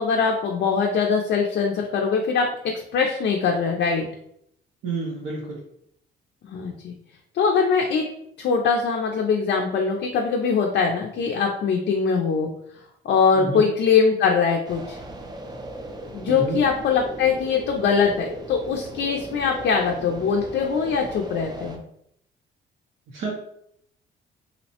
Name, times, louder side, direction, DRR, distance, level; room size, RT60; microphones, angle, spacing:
voice 1, 0.0-2.5 2.9-4.1 6.5-6.9 7.3-8.0 8.4-12.5 13.0-15.0 16.1-21.8, left 5 dB, 60° left, 1 dB, 0.4 m, -22 dB
voice 2, 4.8-5.6 13.3-13.7 16.3-16.6 23.1-23.3, right 3 dB, 75° right, -3 dB, 0.6 m, -29 dB
sound 1, 14.6-21.8, right 1 dB, 20° right, 0.4 m, -38 dB
2.7 x 2.0 x 2.8 m, 0.72 s
cardioid pair, 90°, 20 cm